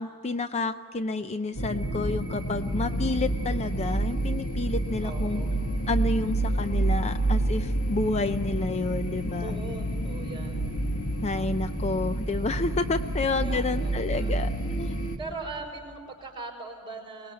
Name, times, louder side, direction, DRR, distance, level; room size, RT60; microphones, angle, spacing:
voice 1, 0.0-5.4 5.9-9.5 11.2-14.5 14.8-15.0, left 3 dB, 30° left, 10 dB, 0.5 m, -30 dB
sound 1, 1.6-15.2, right 1 dB, 85° left, 2.2 m, -29 dB
voice 2, 5.0-5.5 9.4-10.7 13.3-14.3 15.2-17.3, right 3 dB, 20° right, 1 dB, 5.0 m, -40 dB
23.5 x 20.0 x 8.6 m, 2.2 s
head